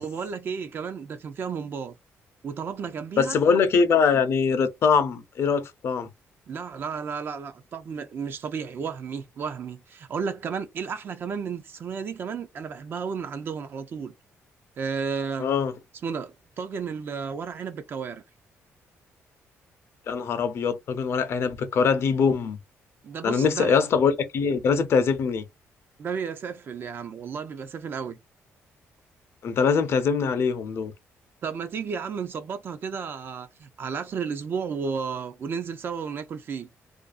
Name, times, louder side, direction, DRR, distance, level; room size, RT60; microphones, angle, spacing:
voice 1, 0.0-1.9 2.4-3.4 6.5-14.1 14.8-15.5 16.0-18.2 23.0-23.7 26.0-28.2 31.4-36.7, right 6 dB, 45° right, 0.4 m, -33 dB
voice 2, 3.2-6.1 15.4-15.7 20.1-22.6 23.2-25.4 29.4-30.9, left 5 dB, 55° left, 0.5 m, -23 dB
2.5 x 2.3 x 2.4 m
cardioid pair, 140°, 5 cm